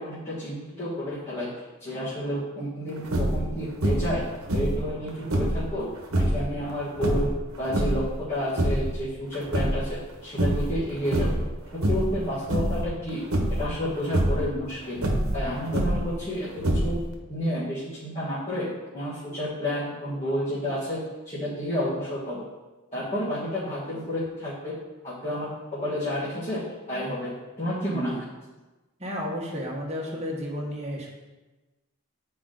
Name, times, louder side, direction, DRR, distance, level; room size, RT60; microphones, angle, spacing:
voice 1, 0.0-1.5 1.8-4.2 4.5-5.9 6.1-7.3 7.6-11.4 11.7-13.2 13.5-15.0 15.3-17.0 17.3-22.4 22.9-24.7 25.0-26.6 26.9-27.3 27.6-28.2, equal, 30° left, -10 dB, 1.6 m, -30 dB
sound 1, 3.0-3.5 3.8-4.2 4.5-5.6 6.1-6.4 7.0-8.1 8.4-9.0 9.3-10.1 10.4-10.8 11.1-11.5 11.8-12.2 12.5-12.9 13.3-13.7 14.0-14.4 15.0-16.1 16.6-17.1, right 1 dB, 80° right, 1.1 m, -25 dB
voice 2, 29.0-31.1, equal, 30° right, -2 dB, 1.3 m, -32 dB
8.3 x 4.7 x 3.9 m, 1.2 s
head